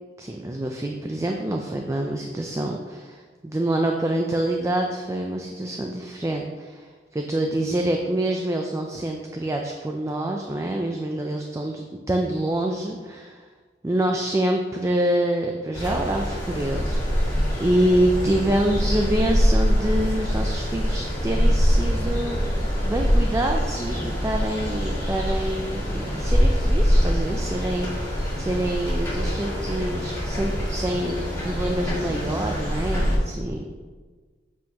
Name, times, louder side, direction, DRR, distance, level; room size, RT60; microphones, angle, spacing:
voice 1, 0.2-13.4 13.8-33.8, right 1 dB, 15° right, 2 dB, 0.4 m, -26 dB
sound 1, 15.7-33.2, equal, 15° left, 1.6 m, -24 dB
7.4 x 5.8 x 2.8 m, 1.5 s
head